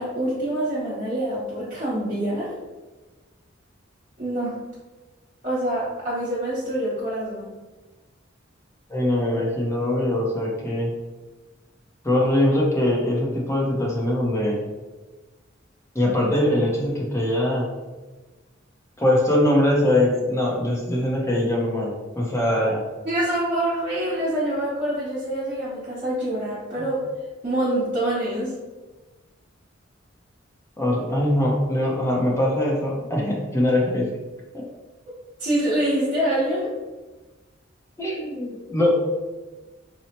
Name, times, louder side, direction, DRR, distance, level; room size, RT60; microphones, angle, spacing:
voice 1, 0.0-2.5 4.2-4.6 5.4-7.5 23.0-27.0 27.4-28.5 35.4-36.7, right 1 dB, 45° right, -10 dB, 0.9 m, -25 dB
voice 2, 8.9-10.9 12.0-14.6 15.9-17.7 19.0-22.8 26.8-26.9 30.8-34.1 34.5-34.6 38.0-38.9, left 1 dB, 15° left, -3 dB, 0.6 m, -22 dB
4.3 x 2.0 x 2.8 m, 1.2 s
head